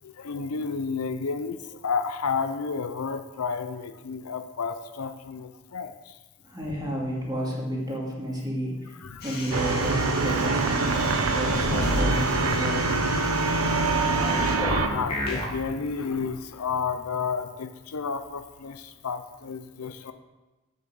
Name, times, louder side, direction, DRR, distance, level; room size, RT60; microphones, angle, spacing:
voice 1, 0.0-6.2 9.0-9.3 10.8-11.0 12.1-12.3 14.5-20.1, left 5 dB, 80° left, 9 dB, 0.6 m, -31 dB
voice 2, 6.4-8.9 9.2-12.9, equal, 20° right, -3 dB, 2.5 m, -31 dB
sound 1, 9.2-14.6, left 3 dB, 45° left, 2.1 m, -38 dB
sound 2, 9.5-14.9, right 3 dB, 80° right, 0.8 m, -25 dB
sound 3, 11.5-12.1 14.1-15.4, left 1 dB, 25° left, 2.2 m, -28 dB
8.3 x 7.1 x 6.3 m, 1.1 s
head